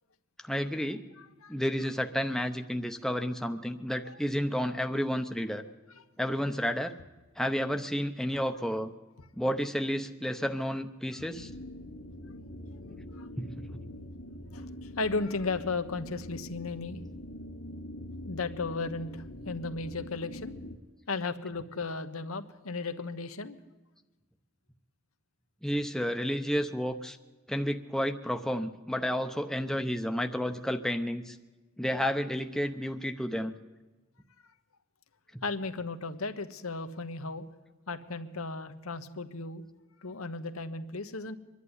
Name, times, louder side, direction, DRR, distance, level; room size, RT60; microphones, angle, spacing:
voice 1, 0.4-1.0 1.5-5.6 6.2-6.9 7.4-8.9 9.4-11.5 13.4-13.5 25.6-27.2 27.5-31.4 31.8-33.5, equal, ahead, 6 dB, 0.7 m, -31 dB
sound 1, 11.3-20.7, left 1 dB, 70° left, 2.0 m, -44 dB
voice 2, 14.5-17.0 18.2-20.5 21.1-23.6 35.4-37.4 37.9-39.6 40.0-41.4, left 3 dB, 90° left, 8 dB, 1.2 m, -35 dB
24.0 x 11.0 x 9.8 m, 1.2 s
head